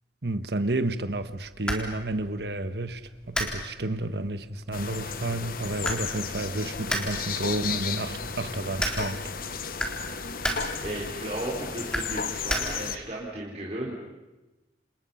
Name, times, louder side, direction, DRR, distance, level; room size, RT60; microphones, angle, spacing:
voice 1, 0.2-9.3, right 2 dB, 70° right, 1.4 m, -31 dB
sound 1, 1.1-13.1, equal, 5° left, 3.9 m, -36 dB
sound 2, 4.7-13.0, left 5 dB, 55° left, 1.3 m, -34 dB
voice 2, 10.8-13.9, right 1 dB, 40° right, 4.5 m, -35 dB
30.0 x 28.0 x 5.8 m
head